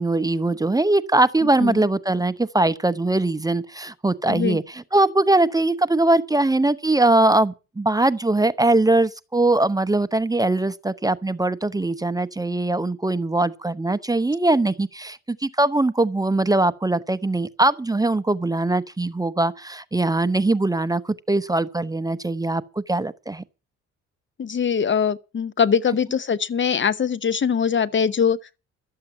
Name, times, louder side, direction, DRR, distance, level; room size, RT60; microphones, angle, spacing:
voice 1, 0.0-23.4, right 2 dB, 10° right, 0.8 m, -21 dB
voice 2, 4.3-4.6 24.4-28.4, left 7 dB, 40° left, 0.8 m, -22 dB
13.0 x 7.7 x 8.6 m
cardioid pair, 90°, 30 cm